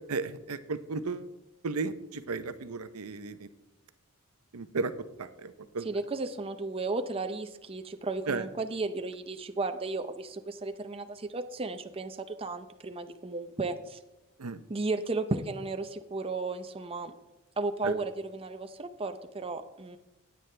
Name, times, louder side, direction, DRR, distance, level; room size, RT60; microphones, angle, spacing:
voice 1, 0.1-1.3 1.6-3.5 4.5-4.9 5.2-5.9 8.3-8.4 14.4-14.6 17.8-17.9, right 4 dB, 85° right, 11 dB, 0.7 m, -34 dB
voice 2, 5.8-14.0 14.7-17.1 17.6-20.0, right 3 dB, 25° right, 8 dB, 0.6 m, -34 dB
16.0 x 9.2 x 3.3 m, 0.99 s
head